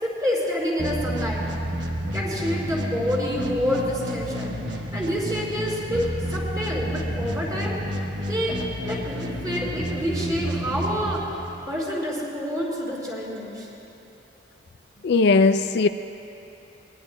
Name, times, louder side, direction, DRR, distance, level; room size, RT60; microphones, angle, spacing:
voice 1, 0.0-1.4 2.1-4.6 4.9-7.8 8.3-8.6 8.8-11.2 11.7-13.7, equal, 20° right, -7 dB, 4.4 m, -27 dB
sound 1, 0.8-11.7, equal, 60° right, 1.2 m, -30 dB
voice 2, 15.0-15.9, left 4 dB, 60° left, 9 dB, 0.4 m, -18 dB
23.5 x 21.5 x 2.2 m, 2.9 s
head